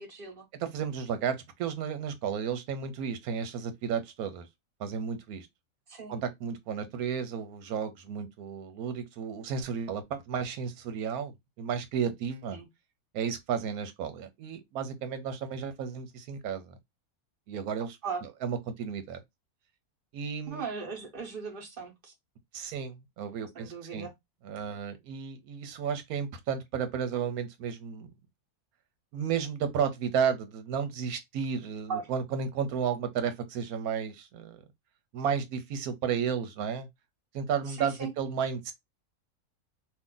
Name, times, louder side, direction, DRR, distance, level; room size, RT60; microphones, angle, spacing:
voice 1, 0.0-0.5 5.9-6.2 12.5-12.7 18.0-18.2 20.5-22.1 23.5-24.1 31.9-32.0 37.7-38.1, right 5 dB, 40° right, 1.2 m, -38 dB
voice 2, 0.6-4.5 4.8-5.5 6.1-12.6 13.1-16.8 17.5-18.0 18.4-19.2 20.1-20.6 22.5-24.1 24.4-28.1 29.1-34.6 35.1-36.9 37.3-38.7, right 7 dB, 85° right, 1.2 m, -33 dB
2.7 x 2.5 x 3.6 m
omnidirectional pair, 1.5 m